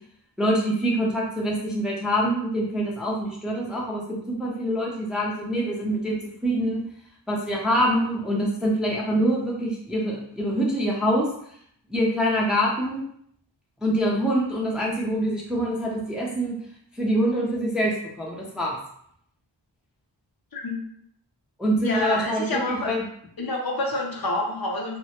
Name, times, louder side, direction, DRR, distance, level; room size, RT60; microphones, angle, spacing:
voice 1, 0.4-6.8 7.3-11.3 11.9-13.0 13.8-16.6 17.0-18.8 21.6-23.0, equal, ahead, -3 dB, 0.4 m, -25 dB
voice 2, 21.8-22.9 23.4-25.0, left 2 dB, 55° left, -1 dB, 0.6 m, -28 dB
2.1 x 2.1 x 2.8 m, 0.68 s
wide cardioid pair, 55°, 44 cm